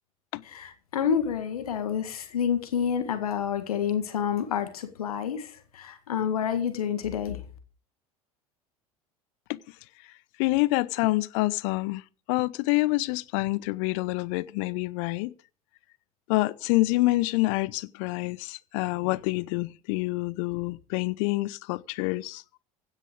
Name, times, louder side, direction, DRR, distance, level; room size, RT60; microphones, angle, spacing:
voice 1, 0.4-7.4, left 8 dB, 75° left, 1.8 m, -29 dB
voice 2, 10.4-12.0 12.3-15.3 16.3-22.4, left 21 dB, 60° left, 0.8 m, -27 dB
16.0 x 9.9 x 5.2 m
figure-of-eight pair, 75°, 19 cm